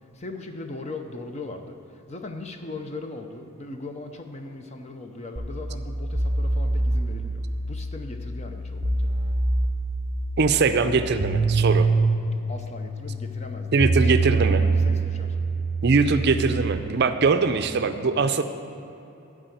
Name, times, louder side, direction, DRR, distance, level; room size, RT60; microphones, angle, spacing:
voice 1, 0.1-1.8 2.1-7.4 7.7-9.0 12.5-15.3, left 2 dB, 30° left, 5 dB, 0.6 m, -38 dB
sound 1, 5.4-16.8, right 3 dB, 25° right, 0.8 m, -25 dB
voice 2, 10.4-11.9 13.7-14.6 15.8-18.4, right 4 dB, 50° right, 9 dB, 0.5 m, -21 dB
12.5 x 4.8 x 7.8 m, 3.0 s
head